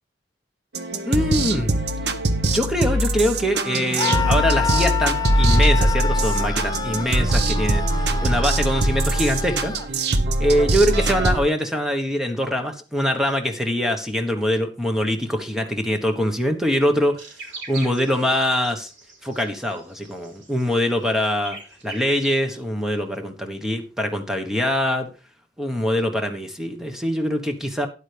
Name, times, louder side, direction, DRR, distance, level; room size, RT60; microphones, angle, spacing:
sound 1, 0.7-11.4, right 1 dB, 65° right, 1.0 m, -22 dB
voice 1, 1.1-1.7 2.4-9.7 10.4-17.2 17.7-18.9 19.2-21.6 21.8-25.1 25.6-27.9, equal, 5° right, 4 dB, 1.2 m, -23 dB
Screaming, 3.9-9.9, left 7 dB, 20° left, 0.5 m, -28 dB
sound 2, 17.2-22.6, right 3 dB, 85° right, 3.6 m, -41 dB
12.5 x 9.7 x 3.4 m, 0.33 s
head